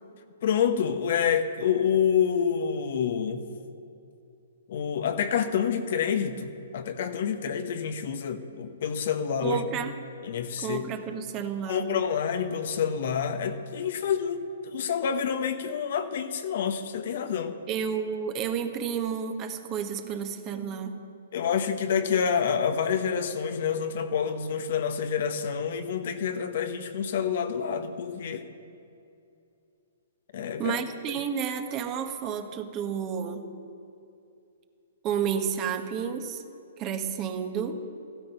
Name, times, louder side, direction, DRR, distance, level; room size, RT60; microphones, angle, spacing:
voice 1, 0.4-3.4 4.7-9.6 10.2-10.8 11.7-17.6 21.3-28.5 30.3-30.8, left 7 dB, 55° left, 8 dB, 1.1 m, -28 dB
voice 2, 9.4-9.9 10.6-12.0 17.7-21.0 30.6-33.5 35.0-36.4 36.8-37.8, right 7 dB, 30° right, 6 dB, 1.3 m, -31 dB
15.0 x 12.5 x 5.6 m, 2.6 s
hypercardioid pair, 125°, 0 cm